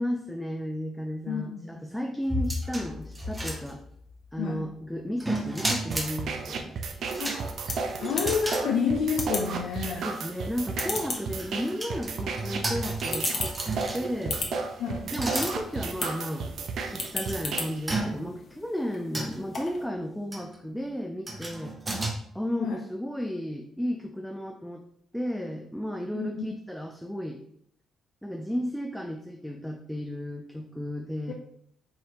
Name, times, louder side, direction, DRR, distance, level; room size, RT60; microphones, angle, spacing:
voice 1, 0.0-3.8 4.3-7.1 8.6-8.7 10.0-13.5 13.9-14.4 15.1-16.5 16.8-21.7 22.3-24.9 25.1-27.4 28.2-31.3, equal, ahead, 3 dB, 0.4 m, -33 dB
voice 2, 1.3-1.7 4.4-4.6 7.2-7.5 8.0-10.1 14.8-15.0 22.6-22.8 26.1-26.4 31.3-31.4, left 6 dB, 85° left, -1 dB, 0.5 m, -29 dB
sound 1, 2.3-4.1 5.2-6.2 7.0-8.7 9.1-9.2 10.7-14.2 15.1-15.6 16.3-16.4 17.1-17.4 17.9-18.5 19.1-19.6 20.3-20.6 21.3-22.1, right 1 dB, 20° right, 0.8 m, -33 dB
sound 2, 5.9-17.9, right 4 dB, 65° right, 0.5 m, -34 dB
sound 3, 7.1-19.9, left 3 dB, 50° left, 1.0 m, -39 dB
4.8 x 2.8 x 2.9 m, 0.69 s
cardioid pair, 90°, 0 cm